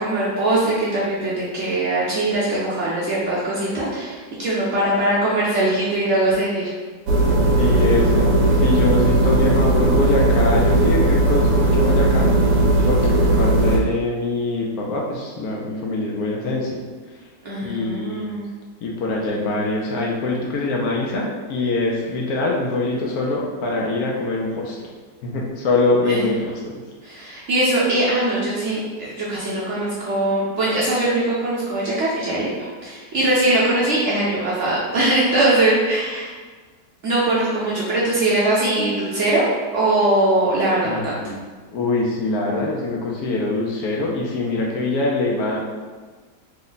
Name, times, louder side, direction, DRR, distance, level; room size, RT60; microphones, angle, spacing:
voice 1, 0.0-6.7 17.4-18.5 26.1-26.3 27.0-32.5 32.8-36.3 37.0-39.4 39.7-41.2, right 1 dB, 60° right, -7 dB, 0.8 m, -21 dB
sound 1, 7.1-13.8, right 1 dB, 75° right, 1.1 m, -17 dB
voice 2, 7.6-12.6 12.8-16.8 17.6-18.3 18.8-24.9 25.2-26.7 40.8-41.5 41.7-45.6, left 2 dB, 70° left, -2 dB, 1.0 m, -24 dB
3.2 x 2.1 x 3.8 m, 1.4 s
omnidirectional pair, 1.7 m